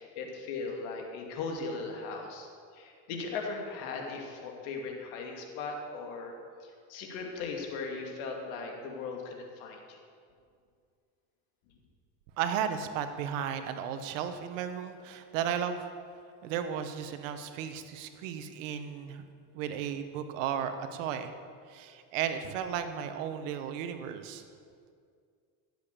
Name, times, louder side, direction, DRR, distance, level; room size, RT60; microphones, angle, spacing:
voice 1, 0.0-2.5 2.7-6.3 6.6-10.0, left 4 dB, 80° left, 2 dB, 2.7 m, -38 dB
voice 2, 12.4-15.9 16.4-19.2 19.5-21.3 21.7-24.4, right 8 dB, 90° right, 9 dB, 1.2 m, -34 dB
15.5 x 8.0 x 7.0 m, 2.2 s
supercardioid pair, 115°, 37 cm